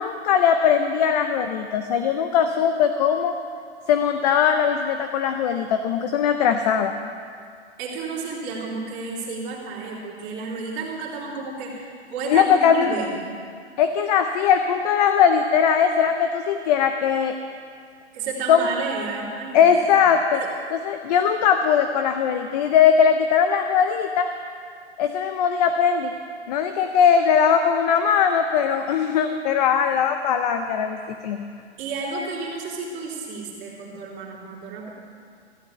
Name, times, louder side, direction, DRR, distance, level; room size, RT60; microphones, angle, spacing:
voice 1, 0.0-3.3 3.9-6.9 12.3-12.9 13.8-17.3 18.5-18.7 19.5-20.4 20.9-24.3 25.0-26.1 26.5-31.5, left 7 dB, 35° left, 7 dB, 0.6 m, -20 dB
voice 2, 7.8-13.2 18.1-19.7 20.3-20.5 31.8-34.9, right 4 dB, 30° right, -5 dB, 3.1 m, -31 dB
15.0 x 6.9 x 9.0 m, 2.2 s
hypercardioid pair, 145°, 34 cm